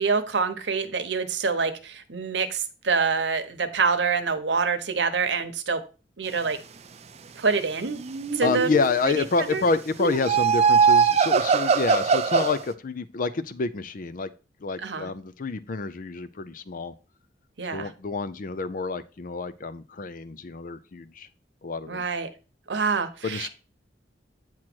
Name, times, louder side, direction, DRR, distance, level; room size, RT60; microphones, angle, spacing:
voice 1, 0.0-5.8 6.2-6.6 7.4-8.0 8.3-8.7 9.0-9.6 14.8-15.1 17.6-17.9 21.9-22.3 22.7-23.5, right 5 dB, 75° right, 9 dB, 0.9 m, -26 dB
sound 1, 8.0-9.0 10.0-12.6, right 6 dB, 35° right, 0.5 m, -21 dB
voice 2, 8.4-14.3 14.6-16.9 17.7-21.3 21.6-22.0 23.2-23.5, left 4 dB, 50° left, 14 dB, 0.5 m, -28 dB
8.8 x 3.0 x 6.0 m, 0.34 s
head